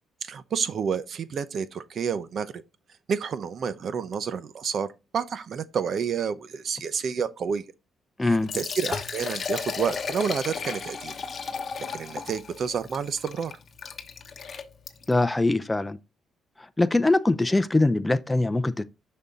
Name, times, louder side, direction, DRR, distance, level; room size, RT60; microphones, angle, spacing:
voice 1, 0.2-2.5 3.1-4.9 5.1-7.6 8.2-11.1 11.9-13.5, right 6 dB, 55° right, 0.8 m, -29 dB
voice 2, 8.2-8.5 15.1-16.0 16.8-18.8, left 2 dB, 15° left, 0.6 m, -22 dB
Liquid, 8.3-15.2, left 5 dB, 45° left, 1.0 m, -34 dB
6.7 x 5.6 x 3.7 m
cardioid pair, 90°, 0 cm